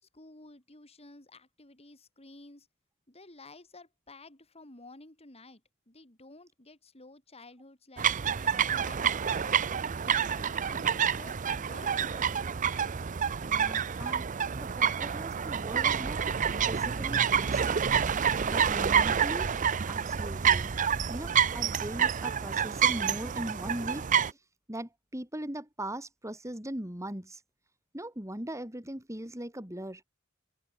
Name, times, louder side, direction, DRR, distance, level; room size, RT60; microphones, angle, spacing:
voice 1, 0.0-2.7 3.1-8.1 8.4-9.6 10.0-12.4, left 2 dB, 30° left, 4.1 m, -52 dB
sound 1, 8.0-24.3, right 7 dB, 40° right, 0.6 m, -28 dB
voice 2, 13.4-14.3 14.6-16.2 16.7-17.8 18.5-19.6 19.9-20.7 21.1-24.4 24.7-27.4 27.9-30.0, right 1 dB, 15° right, 4.0 m, -40 dB
open air
head